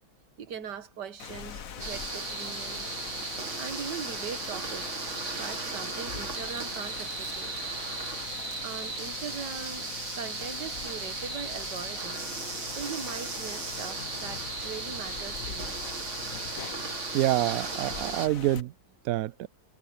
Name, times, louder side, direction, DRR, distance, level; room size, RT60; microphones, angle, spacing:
voice 1, 0.4-3.0 3.6-5.1 5.3-7.5 8.6-9.9 10.2-15.8, right 7 dB, 60° right, 2.0 m, -40 dB
Rain, 1.2-18.6, left 8 dB, 50° left, 1.3 m, -42 dB
sound 1, 1.8-18.3, right 4 dB, 40° right, 2.3 m, -36 dB
voice 2, 17.1-18.7 19.1-19.5, right 15 dB, 80° right, 0.7 m, -27 dB
omnidirectional pair, 2.1 m